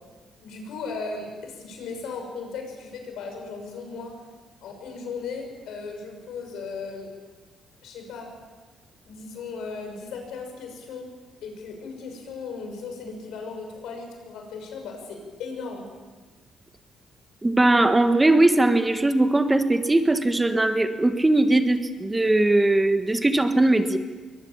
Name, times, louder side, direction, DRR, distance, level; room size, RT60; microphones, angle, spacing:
voice 1, 0.4-4.1 4.6-7.1 7.8-8.3 9.1-11.1 11.4-15.9, left 4 dB, 85° left, 3 dB, 6.2 m, -36 dB
voice 2, 17.4-24.0, right 2 dB, 15° right, 8 dB, 1.5 m, -20 dB
22.5 x 20.0 x 7.4 m, 1.3 s
cardioid pair, 90°, 0 cm